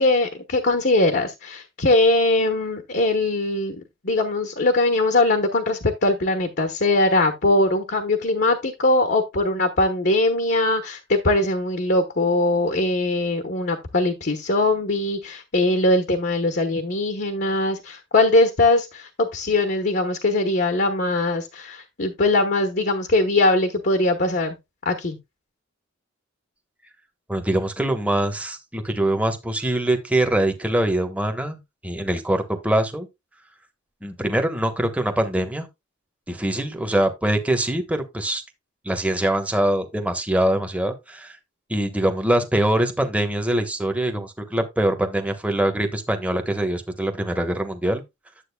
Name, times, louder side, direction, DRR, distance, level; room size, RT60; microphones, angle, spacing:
voice 1, 0.0-3.8 4.0-24.5 24.8-25.2, left 2 dB, 55° left, 1.0 m, -21 dB
voice 2, 27.3-31.6 31.8-33.1 34.0-35.7 36.3-38.4 38.8-41.4 41.7-48.0, right 1 dB, 5° right, 1.1 m, -23 dB
10.0 x 7.6 x 2.2 m
head